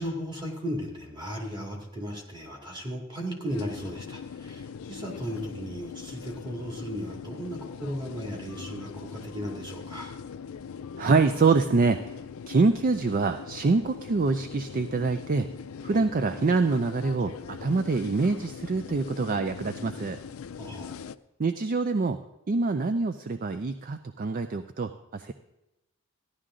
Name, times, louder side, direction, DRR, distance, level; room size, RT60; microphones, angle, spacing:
voice 1, 0.0-10.2 15.9-16.0 20.6-21.0, equal, 20° right, 0 dB, 2.3 m, -36 dB
sound 1, 3.5-21.2, left 6 dB, 75° left, 0.4 m, -41 dB
voice 2, 11.0-12.2 12.5-15.5 15.8-20.2 21.4-25.3, right 4 dB, 40° right, 9 dB, 0.4 m, -25 dB
15.0 x 11.0 x 3.8 m, 0.95 s
head